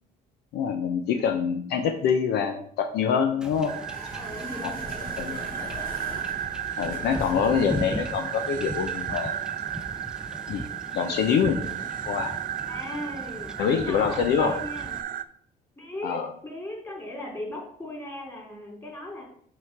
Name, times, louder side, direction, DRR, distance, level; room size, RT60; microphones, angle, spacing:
voice 1, 0.5-3.7 4.6-4.7 5.2-5.7 6.8-9.3 10.5-10.6 10.9-11.6 12.0-12.4 13.6-14.5 16.0-16.3, left 7 dB, 75° left, 6 dB, 0.8 m, -25 dB
Wind / Ocean / Boat Water vehicle, 3.4-15.0, equal, 5° right, 0.6 m, -38 dB
sound 1, 3.5-9.1, left 3 dB, 60° left, 1.4 m, -43 dB
sound 2, 3.7-15.2, right 10 dB, 55° right, 0.5 m, -34 dB
voice 2, 4.1-5.6 11.4-11.9 12.7-15.0 15.8-19.2, left 1 dB, 20° left, -1 dB, 3.4 m, -38 dB
6.2 x 4.8 x 6.0 m, 0.63 s
cardioid pair, 110°, 17 cm